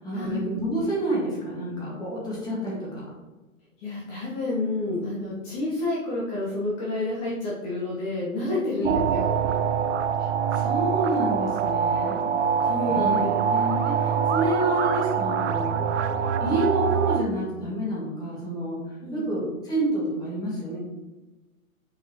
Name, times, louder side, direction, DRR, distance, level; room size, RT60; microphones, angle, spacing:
voice 1, 0.0-3.0 8.8-8.9 9.4-9.5 10.2-12.2 12.8-15.7 16.4-20.8, right 1 dB, 10° left, -5 dB, 2.0 m, -29 dB
voice 2, 3.8-9.3 12.6-13.4 19.0-19.2, left 2 dB, 30° left, -6 dB, 1.6 m, -29 dB
sound 1, 8.8-17.2, right 7 dB, 55° right, 0.6 m, -24 dB
8.1 x 4.7 x 3.2 m, 1.1 s
figure-of-eight pair, 125°, 43 cm